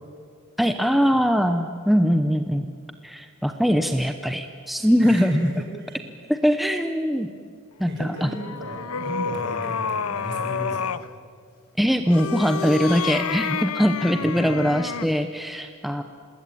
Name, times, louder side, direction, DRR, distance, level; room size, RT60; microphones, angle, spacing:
voice 1, 0.6-2.7 3.0-5.5 6.3-7.3 7.8-8.3 11.8-16.0, equal, ahead, 7 dB, 0.9 m, -22 dB
voice 2, 5.0-6.0 7.9-10.8 14.1-14.7, equal, 55° right, 0 dB, 6.8 m, -35 dB
sound 1, 8.1-11.1 12.0-15.2, left 6 dB, 90° left, 0.8 m, -29 dB
27.5 x 20.5 x 8.7 m, 2.1 s
head